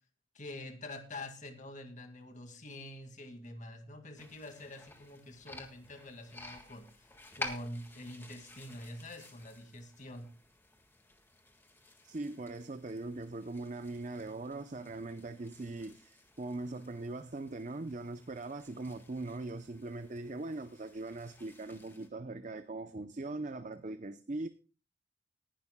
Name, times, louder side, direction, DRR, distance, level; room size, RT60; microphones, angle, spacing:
voice 1, 0.3-7.1 7.4-10.3, left 1 dB, 40° left, 2.1 m, -46 dB
sound 1, 4.2-22.1, left 2 dB, 10° left, 1.7 m, -51 dB
voice 2, 12.0-24.5, right 2 dB, 35° right, 0.6 m, -41 dB
19.5 x 11.5 x 2.2 m
head